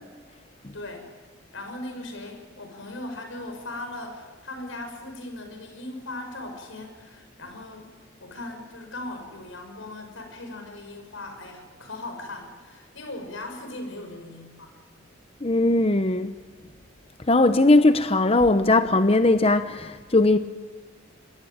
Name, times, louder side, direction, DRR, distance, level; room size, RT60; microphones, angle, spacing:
voice 1, 0.7-1.1 1.5-7.9 8.2-15.0, left 2 dB, 85° left, 5.9 m, -38 dB
voice 2, 15.4-16.3 17.3-20.4, left 2 dB, 30° left, 0.8 m, -19 dB
26.0 x 20.0 x 8.9 m
head